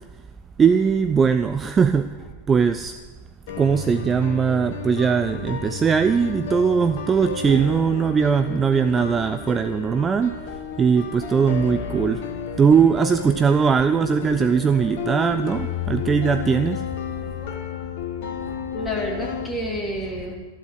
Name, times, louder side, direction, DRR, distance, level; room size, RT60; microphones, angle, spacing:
voice 1, 0.6-2.2 2.5-2.9 3.6-12.3 12.6-16.8, right 6 dB, 20° right, 11 dB, 0.4 m, -20 dB
sound 1, 3.5-19.5, left 7 dB, 55° left, 1.2 m, -32 dB
voice 2, 18.3-20.4, equal, 10° left, -2 dB, 3.2 m, -30 dB
14.0 x 7.9 x 8.1 m, 1.2 s
figure-of-eight pair, 90°, 0 cm